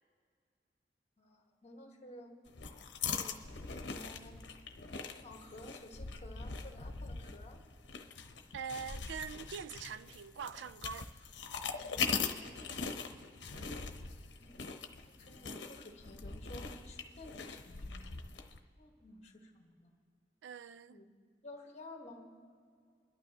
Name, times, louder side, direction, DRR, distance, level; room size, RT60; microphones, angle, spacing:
voice 1, 1.2-2.3 3.0-4.4 5.1-7.6 11.7-13.2 14.0-14.6 15.1-18.0 18.8-19.9 20.9-21.1 21.4-22.3, left 1 dB, 40° left, 1.5 m, -53 dB
sound 1, 2.5-18.6, left 5 dB, 85° left, 0.8 m, -41 dB
voice 2, 8.5-11.1 13.5-13.9 20.4-21.0, right 6 dB, 85° right, 0.4 m, -44 dB
28.0 x 12.0 x 2.9 m
head